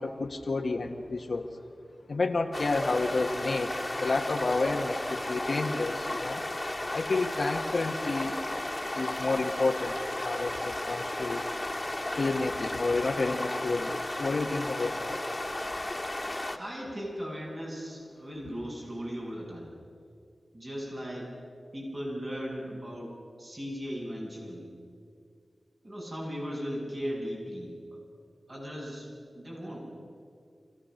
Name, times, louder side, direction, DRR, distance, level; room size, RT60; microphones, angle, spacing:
voice 1, 0.0-1.5 2.1-6.4 6.9-8.4 8.9-11.4 12.2-15.2, left 3 dB, 70° left, 3 dB, 1.3 m, -30 dB
sound 1, 2.5-16.6, left 1 dB, 25° left, 2.0 m, -34 dB
voice 2, 16.6-19.7 20.5-21.3 21.7-24.7 25.8-28.0 28.5-29.9, equal, 45° right, -3 dB, 7.7 m, -37 dB
27.0 x 17.0 x 6.5 m, 2.2 s
cardioid pair, 45°, 0 cm